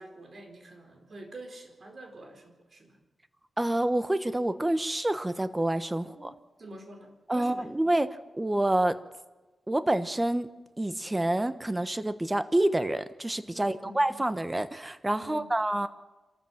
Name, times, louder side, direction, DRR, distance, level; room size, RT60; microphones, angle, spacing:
voice 1, 0.0-3.0 6.0-7.7 13.5-14.0 15.2-15.5, right 2 dB, 45° right, 4 dB, 4.4 m, -47 dB
voice 2, 3.6-6.3 7.3-8.1 8.3-9.0 9.7-10.5 10.8-15.9, right 1 dB, 15° right, 11 dB, 1.1 m, -27 dB
27.0 x 13.5 x 7.4 m, 1.2 s
wide cardioid pair, 105°, 0 cm